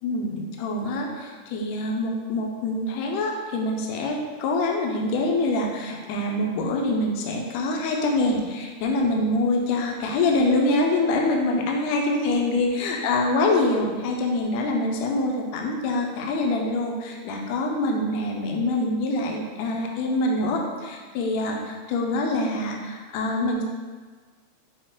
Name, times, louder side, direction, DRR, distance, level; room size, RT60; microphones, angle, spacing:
voice 1, 0.0-23.6, left 2 dB, 75° left, 0 dB, 1.7 m, -25 dB
6.3 x 2.3 x 3.6 m, 1.5 s
omnidirectional pair, 3.5 m